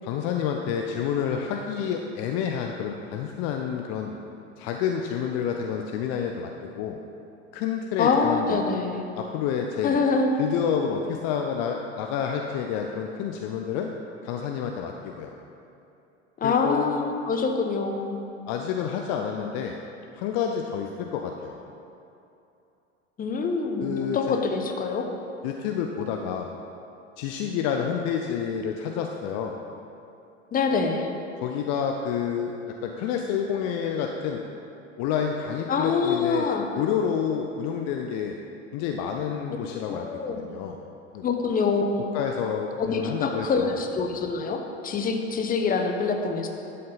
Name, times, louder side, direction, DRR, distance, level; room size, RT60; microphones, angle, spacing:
voice 1, 0.0-4.2 4.6-7.0 7.5-8.6 9.1-10.0 10.4-13.9 14.2-15.3 16.4-16.9 18.5-19.7 20.1-21.6 23.8-24.4 25.4-26.5 27.2-29.5 31.4-34.4 35.0-36.5 36.7-38.4 38.7-40.1 40.4-40.8 41.1-41.2 42.1-43.7, left 7 dB, 45° left, 3 dB, 0.7 m, -29 dB
voice 2, 8.0-9.1 9.8-10.3 16.4-18.2 23.2-25.1 30.5-31.1 35.7-36.6 39.9-40.4 41.2-42.1 42.8-46.5, left 4 dB, 25° left, 4 dB, 1.0 m, -25 dB
11.5 x 7.7 x 4.0 m, 2.7 s
figure-of-eight pair, 75°, 37 cm